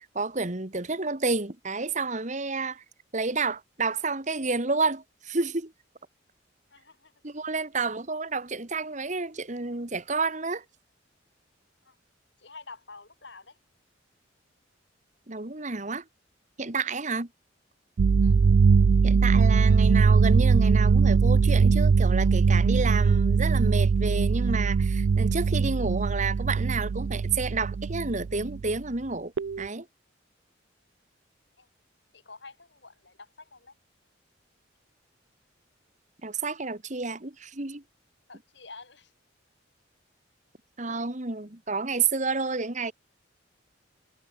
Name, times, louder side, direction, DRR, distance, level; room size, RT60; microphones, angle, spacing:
voice 1, 0.2-2.8 3.1-5.7 7.2-10.6 15.3-16.0 16.6-17.3 19.0-29.3 29.6-29.9 36.2-37.8 40.8-42.9, right 4 dB, 40° right, 1.8 m, -30 dB
voice 2, 6.7-7.1 11.8-12.0 12.4-13.6 18.2-18.4 31.6-31.7 32.1-33.8 38.3-39.1, left 3 dB, 60° left, 4.8 m, -48 dB
sound 1, 18.0-28.8 29.4-29.7, right 5 dB, 65° right, 0.4 m, -21 dB
head